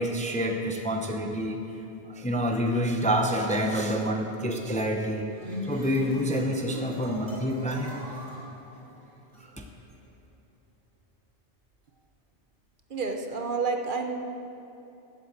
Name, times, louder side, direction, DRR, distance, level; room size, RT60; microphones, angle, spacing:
voice 1, 0.0-1.6 2.0-5.3 5.6-8.0 9.6-9.7, equal, 10° left, 3 dB, 0.6 m, -27 dB
sound 1, 5.3-9.4, equal, 85° right, 3.3 m, -39 dB
voice 2, 12.9-14.1, right 4 dB, 50° right, 4 dB, 1.0 m, -29 dB
12.0 x 8.2 x 8.0 m, 2.7 s
omnidirectional pair, 1.1 m